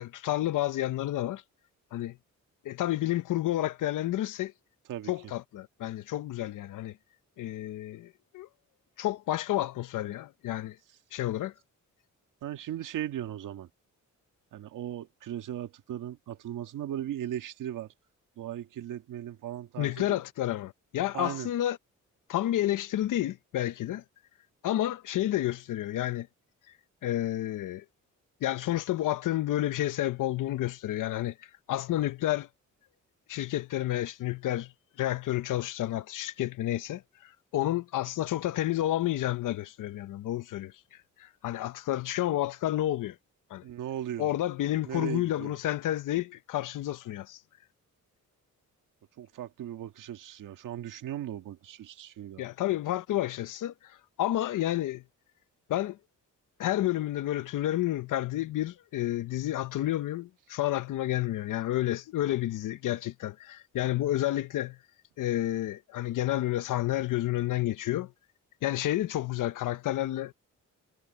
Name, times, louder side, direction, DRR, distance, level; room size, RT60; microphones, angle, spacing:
voice 1, 0.0-1.4 1.9-2.2 2.6-4.5 5.1-7.0 7.4-8.5 9.0-10.8 11.1-11.5 19.8-21.8 22.3-24.0 24.6-26.3 27.0-27.8 28.4-31.4 31.7-32.5 33.3-34.7 35.0-40.7 41.2-43.2 43.5-43.6 44.2-47.4 52.4-55.0 55.7-56.0 56.6-64.8 65.2-68.1 68.6-70.3, left 14 dB, 85° left, 0.9 m, -30 dB
voice 2, 12.4-13.7 14.5-17.9 18.4-20.2 21.1-21.5 43.6-44.3 44.8-45.6 49.2-52.4, right 11 dB, 85° right, 1.7 m, -37 dB
wide cardioid pair, 180°, 31 cm